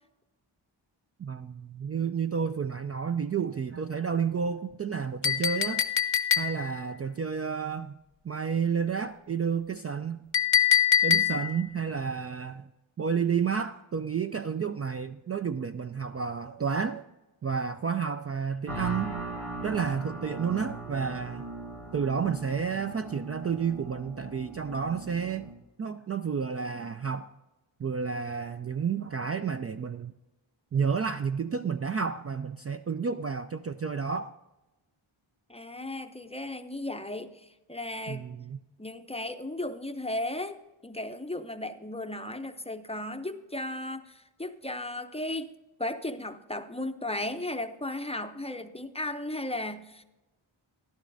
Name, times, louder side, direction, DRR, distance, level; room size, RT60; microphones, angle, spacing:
voice 1, 1.2-5.8 6.4-8.0 8.2-10.2 11.0-12.7 13.0-17.0 17.4-19.2 19.6-21.5 21.9-25.5 25.8-27.3 27.8-30.1 30.7-34.3 38.1-38.6, right 6 dB, 35° right, 8 dB, 0.4 m, -31 dB
Chink clink, 5.2-6.8 10.3-11.6, left 9 dB, 65° left, 0.8 m, -24 dB
sound 1, 18.7-25.5, right 3 dB, 85° right, 2.3 m, -39 dB
voice 2, 35.5-38.3 38.8-45.5 45.8-50.0, left 1 dB, 15° left, 8 dB, 0.6 m, -35 dB
13.0 x 11.5 x 2.6 m, 1.0 s
cardioid pair, 55°, 48 cm